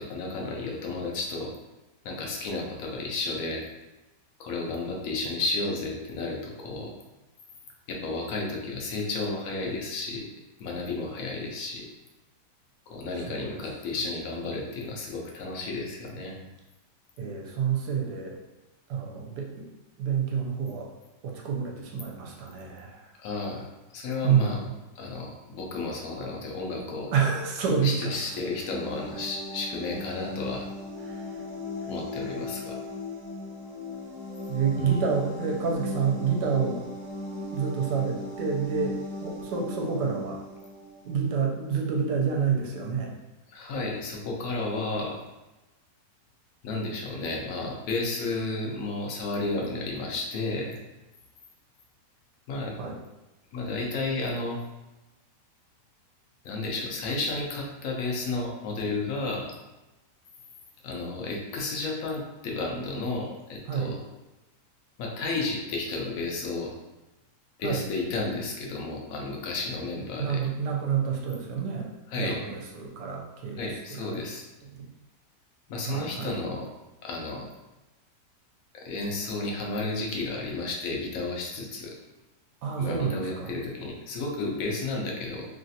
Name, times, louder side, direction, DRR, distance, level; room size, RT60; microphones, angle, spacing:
voice 1, 0.0-1.5 2.0-3.6 4.4-6.9 7.9-10.3 10.6-11.9 12.9-16.4 23.2-24.6 25.0-27.1 27.8-30.7 31.9-32.8 34.8-34.9 43.5-45.2 46.6-50.8 52.5-52.8 53.5-54.6 56.4-59.6 60.8-64.0 65.0-66.7 67.6-70.4 72.1-72.4 73.6-74.4 75.7-76.7 77.0-77.5 78.7-81.9 82.8-85.5, left 3 dB, 65° left, 0 dB, 0.9 m, -32 dB
voice 2, 13.3-13.6 17.2-18.4 18.9-19.7 20.0-20.9 21.2-23.1 24.2-24.7 27.1-28.2 31.0-31.2 34.5-36.8 37.5-40.4 41.0-43.2 52.8-53.0 63.7-64.0 67.6-67.8 70.2-71.9 72.1-74.3 74.7-74.9 75.9-76.4 82.6-83.6, right 6 dB, 75° right, 0 dB, 1.2 m, -28 dB
sound 1, 28.0-41.5, left 2 dB, 35° right, 0.8 m, -38 dB
3.2 x 2.4 x 2.6 m, 1.0 s
omnidirectional pair, 1.9 m